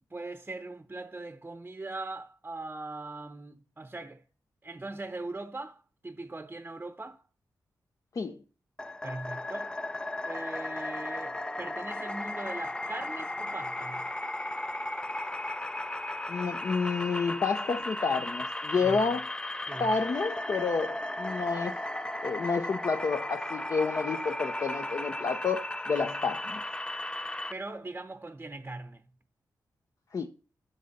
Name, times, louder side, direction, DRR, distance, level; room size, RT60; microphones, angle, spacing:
voice 1, 0.1-4.2 4.6-7.2 9.0-9.8 10.3-14.1 18.8-19.0 19.7-19.9 27.5-29.1, right 2 dB, 25° right, 0.7 m, -40 dB
sound 1, 8.8-27.5, left 1 dB, 10° left, 0.4 m, -35 dB
voice 2, 16.3-19.3 19.8-21.8 22.2-26.6 30.1-30.3, left 4 dB, 50° left, 0.7 m, -30 dB
13.0 x 5.3 x 4.1 m
cardioid pair, 80°, 7 cm